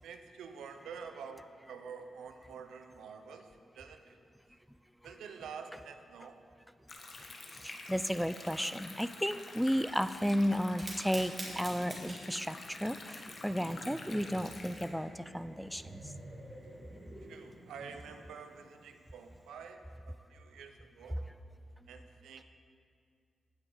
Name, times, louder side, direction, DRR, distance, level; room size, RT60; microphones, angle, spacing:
voice 1, 0.0-4.2 5.0-6.5 14.4-14.5 17.3-21.2 21.9-22.4, right 6 dB, 90° right, 7 dB, 0.6 m, -48 dB
Stream, 6.9-14.9, left 3 dB, 55° left, 1.3 m, -48 dB
voice 2, 7.6-16.0, equal, ahead, 13 dB, 0.3 m, -33 dB
Fire, 10.8-19.5, right 1 dB, 40° right, 2.7 m, -50 dB
sound 1, 13.5-18.1, right 1 dB, 25° right, 2.5 m, -51 dB
16.5 x 5.9 x 3.9 m, 2.3 s
cardioid pair, 60°, 0 cm